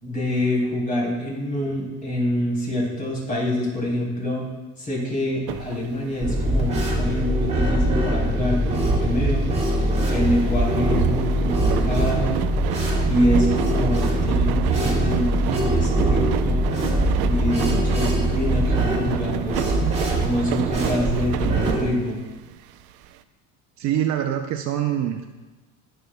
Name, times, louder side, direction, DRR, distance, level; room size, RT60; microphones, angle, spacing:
voice 1, 0.0-4.5 4.8-9.5 10.1-12.3 13.1-16.6 17.3-19.6 20.2-22.2, left 1 dB, 20° left, -4 dB, 3.6 m, -25 dB
sound 1, 5.5-23.1, right 12 dB, 85° right, 0.6 m, -30 dB
sound 2, 6.2-21.8, right 1 dB, 15° right, 2.4 m, -23 dB
voice 2, 23.8-25.4, right 10 dB, 45° right, 5 dB, 0.6 m, -25 dB
20.0 x 6.7 x 2.2 m, 1.2 s
cardioid pair, 140°, 38 cm